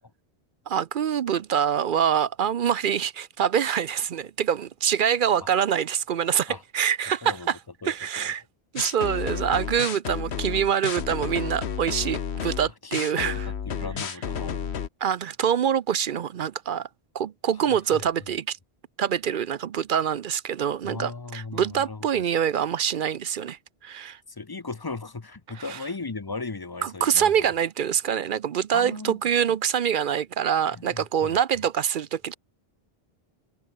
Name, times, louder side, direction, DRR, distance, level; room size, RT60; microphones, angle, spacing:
voice 1, 0.7-7.6 7.8-8.4 8.7-13.5 15.0-16.9 17.1-18.6 19.0-24.2 25.5-25.8 26.8-32.4, right 8 dB, 60° right, 0.7 m, -25 dB
voice 2, 7.8-8.3 12.8-14.8 17.9-18.1 20.8-22.0 24.3-27.5 28.7-29.2 30.7-31.3, left 3 dB, 25° left, 0.7 m, -37 dB
sound 1, 8.8-14.9, left 7 dB, 90° left, 1.4 m, -31 dB
omnidirectional pair, 1.1 m